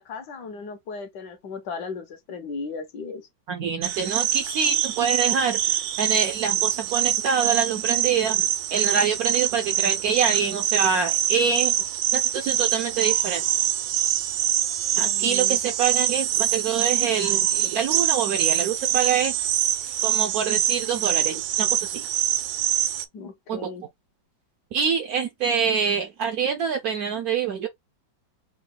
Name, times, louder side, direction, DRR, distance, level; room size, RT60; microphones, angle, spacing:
voice 1, 0.0-3.3 15.0-15.6 23.1-23.8, left 4 dB, 70° left, 1.3 m, -36 dB
voice 2, 3.5-11.7 12.1-13.4 15.0-19.3 20.0-22.0 23.5-23.6 24.7-27.7, right 6 dB, 75° right, 0.8 m, -25 dB
sound 1, 3.8-23.0, right 11 dB, 90° right, 1.4 m, -24 dB
3.8 x 2.2 x 3.6 m
omnidirectional pair, 2.1 m